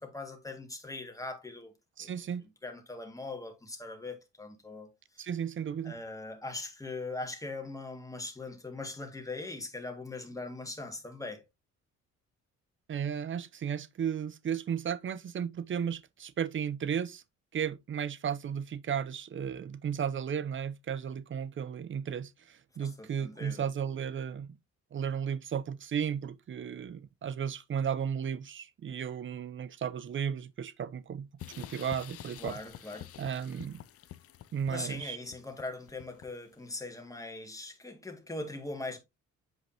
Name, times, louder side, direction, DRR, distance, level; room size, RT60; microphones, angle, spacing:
voice 1, 0.0-1.7 2.0-2.1 2.6-5.2 5.8-11.4 22.8-23.7 32.4-33.1 34.7-39.0, left 2 dB, 10° left, 2.0 m, -41 dB
voice 2, 2.0-2.4 5.2-6.0 12.9-17.2 17.5-24.6 24.9-31.3 31.6-32.6 33.2-33.8 34.5-35.2, right 8 dB, 40° right, 0.6 m, -34 dB
sound 1, 31.4-36.5, left 11 dB, 50° left, 0.5 m, -48 dB
7.9 x 5.0 x 2.8 m
cardioid pair, 90°, 30 cm